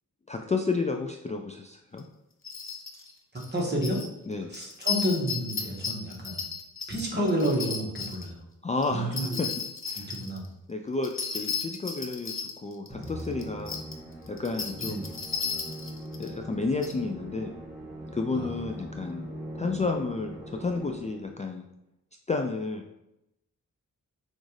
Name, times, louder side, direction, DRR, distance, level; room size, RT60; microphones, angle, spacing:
voice 1, 0.3-2.0 4.3-4.5 8.6-9.5 9.9-10.1 10.7-13.8 14.3-15.1 16.2-17.5 18.1-19.3 19.5-21.6 22.3-23.0, left 3 dB, 20° left, 3 dB, 0.3 m, -31 dB
sound 1, 2.0-2.1 2.4-3.1 3.4-4.1 4.5-8.3 8.8-10.5 11.0-13.9 14.3-16.3 16.8-16.9, left 5 dB, 40° left, 0.8 m, -34 dB
voice 2, 3.3-4.0 4.5-6.5 6.9-8.4 8.9-9.4 10.1-10.4 14.8-15.2 18.3-18.6, equal, 30° right, -2 dB, 1.4 m, -30 dB
Musical instrument, 12.9-21.4, right 1 dB, 10° right, 1.2 m, -41 dB
6.2 x 2.5 x 3.2 m, 0.87 s
cardioid pair, 65°, 33 cm